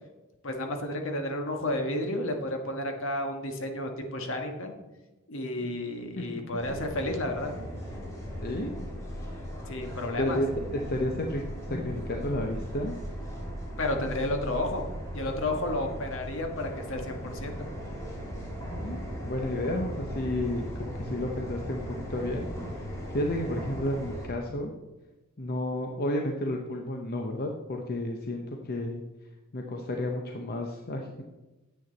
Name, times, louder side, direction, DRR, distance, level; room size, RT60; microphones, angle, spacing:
voice 1, 0.4-4.8 5.3-7.5 9.7-10.4 13.8-14.8 15.1-17.7, left 1 dB, 65° left, 4 dB, 1.4 m, -32 dB
sound 1, 6.6-24.3, equal, 15° left, 2.5 m, -38 dB
voice 2, 10.2-11.4 11.7-12.9 18.8-22.5 23.1-24.7 25.4-29.0 29.5-31.2, left 1 dB, 45° left, 2 dB, 0.8 m, -31 dB
9.5 x 7.9 x 4.0 m, 1.1 s
head